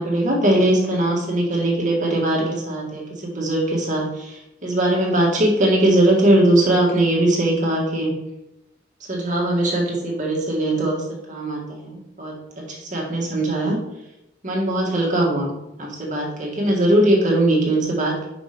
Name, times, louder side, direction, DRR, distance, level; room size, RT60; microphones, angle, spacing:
voice 1, 0.0-8.1 9.1-13.8 14.4-15.5 15.8-18.3, right 1 dB, 40° right, -3 dB, 1.7 m, -20 dB
5.4 x 5.0 x 5.2 m, 0.89 s
head